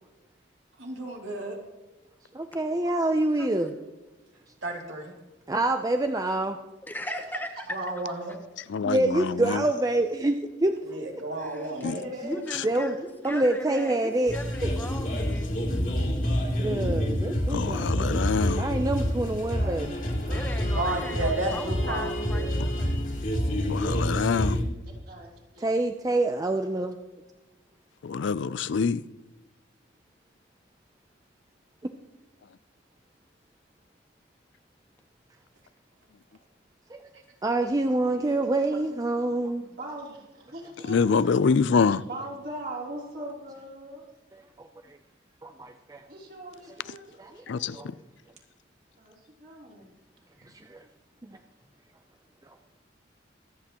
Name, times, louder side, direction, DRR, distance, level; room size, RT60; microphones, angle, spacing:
voice 1, 0.8-1.6 4.6-5.1 7.7-8.4 10.8-12.1 20.7-22.5 37.1-37.2, right 2 dB, 75° right, 2.6 m, -32 dB
voice 2, 2.3-3.7 5.5-6.6 8.8-10.7 12.6-12.9 13.2-14.3 14.6-14.7 16.6-18.3 18.6-19.9 25.6-27.0 36.9-37.0 37.4-39.7 44.6-44.7 45.4-46.0 47.2-47.4 47.7-47.9 50.7-50.8, right 2 dB, 20° right, 0.5 m, -26 dB
voice 3, 3.4-3.8 6.8-7.5 11.4-11.7 12.2-15.8 20.3-23.0, left 1 dB, 10° left, 0.9 m, -38 dB
voice 4, 8.7-9.6 11.8-11.9 17.5-18.7 23.7-24.6 28.0-29.0 40.9-42.0 47.5-47.8, left 5 dB, 70° left, 0.4 m, -25 dB
voice 5, 11.4-13.0 19.4-19.7 20.0-20.8 24.8-25.7 39.6-41.4 42.0-44.0 46.1-47.9 49.0-49.1 49.4-49.9 50.4-50.5, right 1 dB, 50° right, 3.2 m, -41 dB
sound 1, 14.3-24.6, equal, 45° left, 2.4 m, -28 dB
24.0 x 8.4 x 3.0 m
head